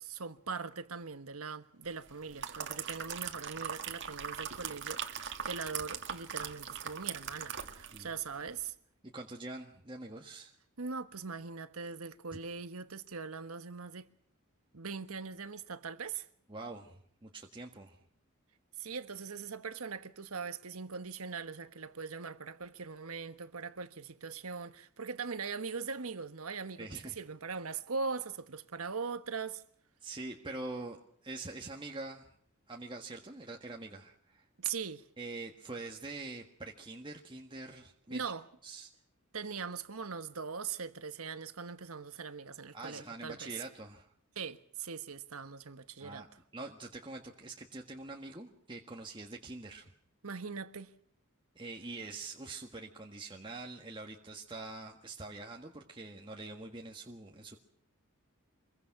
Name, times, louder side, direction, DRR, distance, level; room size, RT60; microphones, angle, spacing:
voice 1, 0.0-8.7 10.8-14.1 14.7-16.3 18.8-26.9 27.2-29.6 34.6-35.1 38.1-38.4 39.3-43.5 44.4-46.2 50.2-50.9, right 5 dB, 80° right, 1.3 m, -41 dB
sound 1, 2.1-8.1 8.4-8.6, right 8 dB, 55° right, 1.9 m, -40 dB
voice 2, 9.0-10.5 16.5-18.1 26.8-27.2 30.0-32.3 32.7-34.5 35.2-38.2 38.6-38.9 42.7-44.1 46.0-46.3 46.5-49.9 51.5-57.6, right 2 dB, 20° right, 1.6 m, -45 dB
26.0 x 22.0 x 6.0 m
head